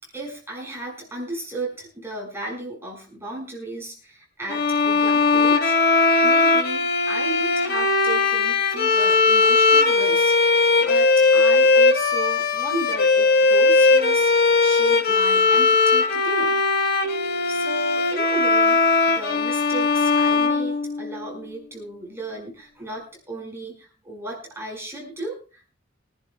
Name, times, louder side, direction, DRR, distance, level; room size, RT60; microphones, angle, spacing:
voice 1, 0.0-5.8 6.2-16.6 17.5-25.7, right 2 dB, 15° right, -1 dB, 5.2 m, -35 dB
sound 1, 4.5-21.3, left 3 dB, 50° left, 1.3 m, -19 dB
25.0 x 11.0 x 2.3 m, 0.36 s
head